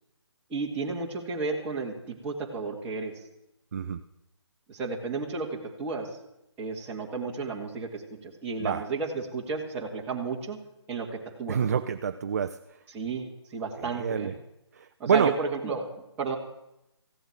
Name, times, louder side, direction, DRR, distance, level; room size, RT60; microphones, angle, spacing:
voice 1, 0.5-3.1 4.7-6.1 6.6-10.6 10.9-11.6 12.9-14.3 15.0-16.4, right 4 dB, 10° right, -3 dB, 1.9 m, -33 dB
voice 2, 11.5-12.6 13.8-14.4 14.8-15.3, right 7 dB, 35° right, 10 dB, 0.5 m, -27 dB
15.5 x 7.8 x 9.2 m, 0.86 s
figure-of-eight pair, 155°, 15 cm